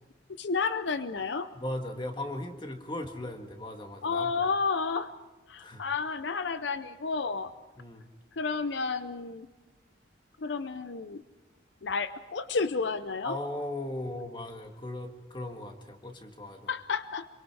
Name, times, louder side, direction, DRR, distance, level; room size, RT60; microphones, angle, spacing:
voice 1, 0.4-1.5 4.0-5.1 5.5-7.5 8.3-9.5 10.4-11.2 11.8-13.4 16.7-17.3, left 4 dB, 70° left, 12 dB, 0.6 m, -31 dB
voice 2, 1.5-4.3 5.6-5.8 7.8-8.1 13.2-16.7, left 1 dB, 25° left, 4 dB, 1.8 m, -37 dB
26.5 x 23.5 x 4.8 m, 1.2 s
head